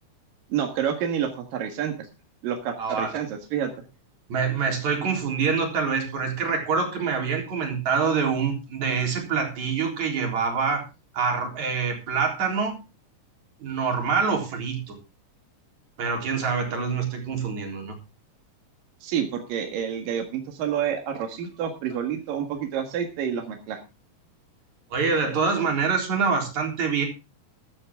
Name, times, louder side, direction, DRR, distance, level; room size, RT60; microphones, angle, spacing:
voice 1, 0.5-1.9 2.4-3.7 19.0-23.8, right 8 dB, 80° right, 4 dB, 3.4 m, -28 dB
voice 2, 2.8-3.1 4.3-10.8 11.1-12.8 13.6-14.9 16.0-18.0 24.9-27.0, right 5 dB, 55° right, 2 dB, 5.1 m, -25 dB
14.5 x 12.5 x 3.6 m, 0.29 s
omnidirectional pair, 3.9 m